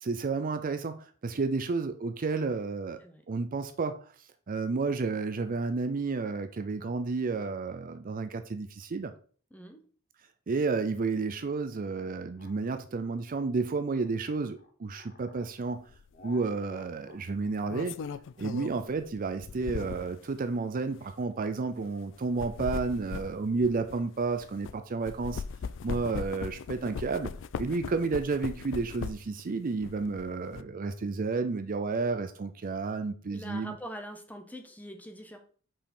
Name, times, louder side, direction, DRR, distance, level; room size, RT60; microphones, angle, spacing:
voice 1, 0.0-3.0 3.3-4.0 4.5-9.1 10.5-15.8 16.2-18.0 18.4-25.4 25.8-27.3 27.6-33.7, right 4 dB, 40° right, 10 dB, 0.5 m, -31 dB
voice 2, 9.5-9.8 27.7-28.0 33.3-35.4, equal, 5° left, 6 dB, 0.9 m, -44 dB
sound 1, 11.9-15.5 16.1-20.6, left 3 dB, 45° left, 1.0 m, -55 dB
sound 2, 15.9-16.1 17.4-20.2 20.9-21.1 22.2-24.7 25.1-29.4 29.8-30.6, left 5 dB, 60° left, 0.4 m, -39 dB
5.5 x 5.1 x 4.3 m, 0.43 s
head